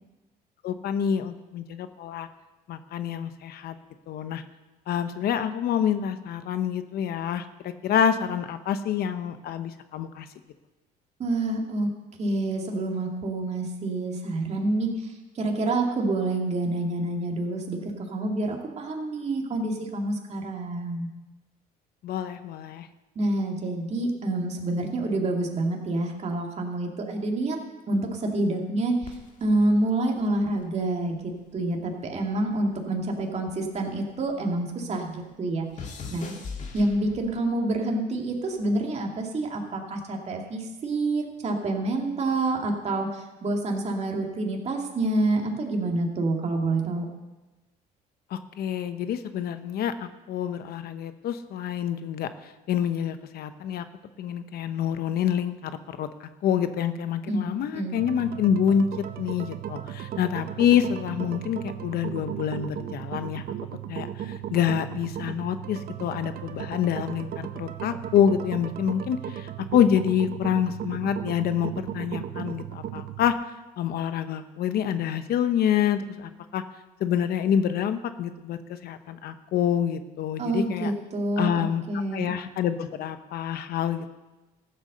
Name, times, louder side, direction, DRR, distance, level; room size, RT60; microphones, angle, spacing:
voice 1, 0.6-2.3 2.7-3.8 4.1-4.4 4.9-10.3 22.0-22.9 48.3-52.3 52.7-53.9 54.2-58.9 59.2-63.4 63.9-73.3 73.8-76.6 77.0-80.9 81.4-81.8 82.1-84.1, left 9 dB, 65° left, 11 dB, 0.9 m, -27 dB
voice 2, 11.2-11.9 12.2-21.1 23.2-27.6 27.9-31.2 31.5-35.7 36.1-36.3 36.7-47.0 57.3-58.0 80.4-82.4, right 2 dB, 40° right, 1 dB, 2.4 m, -27 dB
sound 1, 29.0-31.5 31.8-34.4 34.7-37.5 38.3-38.6, left 4 dB, 45° left, 2.0 m, -42 dB
sound 2, 58.0-73.3, right 11 dB, 60° right, 0.9 m, -36 dB
14.5 x 7.9 x 6.7 m, 1.1 s
cardioid pair, 110°, 17 cm